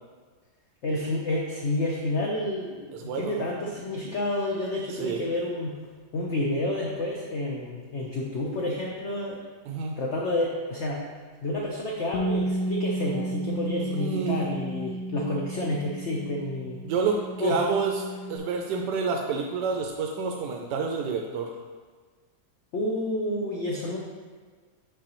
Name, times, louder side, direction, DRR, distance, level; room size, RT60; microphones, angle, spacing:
voice 1, 0.8-5.8 6.1-9.4 10.0-11.0 11.4-16.8 17.4-17.6 22.7-24.0, left 1 dB, 55° left, -3 dB, 0.8 m, -29 dB
voice 2, 2.9-3.5 4.9-5.3 9.7-10.0 13.9-14.5 16.8-21.5, right 5 dB, 85° right, 2 dB, 1.2 m, -29 dB
Bass guitar, 12.1-18.4, right 1 dB, 80° left, 1.2 m, -32 dB
6.8 x 5.1 x 3.0 m, 1.5 s
omnidirectional pair, 1.8 m